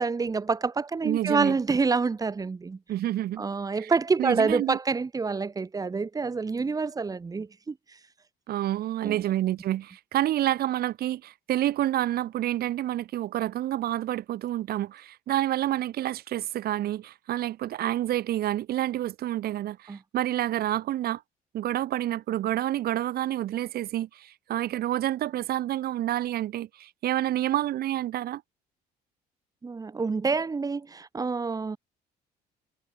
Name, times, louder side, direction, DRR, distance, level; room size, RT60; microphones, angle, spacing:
voice 1, 0.0-2.8 3.4-7.8 9.0-9.2 19.9-20.0 29.6-31.8, right 4 dB, 20° right, 1.0 m, -27 dB
voice 2, 1.0-1.6 2.9-3.4 3.8-3.9 4.2-4.8 8.5-21.2 21.5-28.4, right 13 dB, 65° right, 1.9 m, -28 dB
cardioid pair, 110°, 17 cm